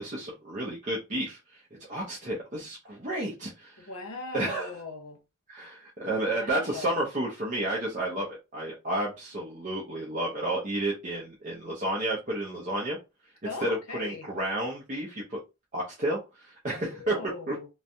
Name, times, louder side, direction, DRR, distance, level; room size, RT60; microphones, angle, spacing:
voice 1, 0.0-1.6 1.9-3.9 4.3-4.7 5.5-13.0 13.6-15.4 15.7-17.1 17.5-17.6, right 1 dB, 35° right, 0.7 m, -31 dB
voice 2, 3.8-5.2 6.2-6.9 13.5-14.3 16.7-17.7, left 3 dB, 75° left, 0.9 m, -39 dB
3.2 x 2.2 x 2.6 m
head